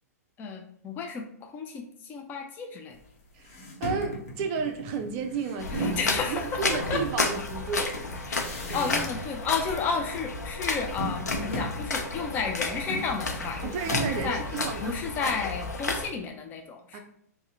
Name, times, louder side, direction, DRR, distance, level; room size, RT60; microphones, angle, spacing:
voice 1, 0.4-3.0 5.7-7.0 8.3-14.4 14.8-17.0, left 5 dB, 20° left, 2 dB, 0.3 m, -32 dB
sound 1, 3.0-3.1 3.4-6.1 6.7-9.4 9.6-10.2 10.5-15.1, equal, 55° left, 0.8 m, -37 dB
voice 2, 3.3-8.1 8.7-8.9 13.6-15.0 16.9-17.0, right 5 dB, 40° right, 6 dB, 0.5 m, -32 dB
sound 2, 5.6-16.1, left 3 dB, 85° left, 0.5 m, -32 dB
2.7 x 2.1 x 3.6 m, 0.70 s
hypercardioid pair, 115°, 9 cm